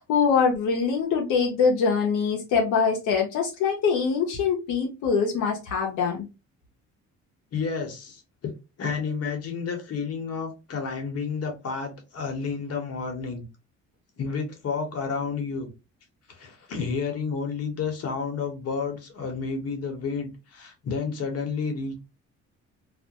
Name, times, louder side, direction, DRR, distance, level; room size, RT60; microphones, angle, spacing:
voice 1, 0.0-6.2, left 5 dB, 85° left, 0.7 m, -23 dB
voice 2, 7.5-8.5 8.8-13.4 14.2-15.7 16.3-22.0, left 5 dB, 55° left, 1.0 m, -31 dB
2.4 x 2.1 x 2.8 m
cardioid pair, 90°, 30 cm